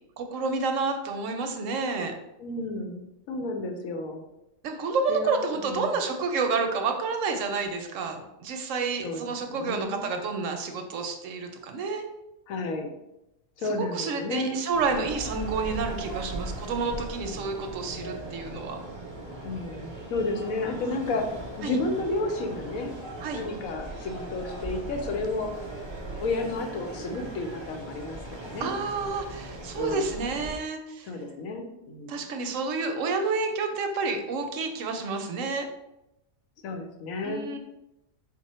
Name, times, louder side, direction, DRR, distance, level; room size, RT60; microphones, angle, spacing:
voice 1, 0.2-2.1 4.6-12.0 13.6-18.8 21.6-21.8 23.2-23.4 28.6-31.1 32.1-35.7 37.2-37.6, right 4 dB, 70° right, 5 dB, 0.9 m, -29 dB
voice 2, 2.4-3.0 3.3-4.2 5.1-5.9 9.0-9.2 9.5-10.1 12.5-12.9 13.6-14.6 19.4-22.9 23.3-25.6 26.2-28.7 29.7-30.0 31.0-32.2 36.6-37.5, left 2 dB, 80° left, 4 dB, 1.1 m, -32 dB
sound 1, 14.7-30.6, right 2 dB, 30° right, 0.5 m, -39 dB
4.7 x 2.2 x 4.1 m, 0.89 s
omnidirectional pair, 1.5 m